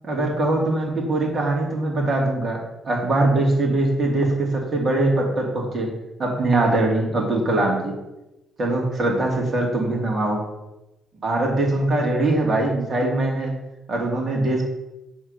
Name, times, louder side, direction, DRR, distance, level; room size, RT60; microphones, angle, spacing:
voice 1, 0.0-5.9 6.2-7.9 8.6-10.4 11.2-13.5 13.9-14.7, right 2 dB, 40° right, -1 dB, 2.4 m, -22 dB
8.9 x 3.7 x 6.5 m, 0.98 s
cardioid pair, 90°, 0 cm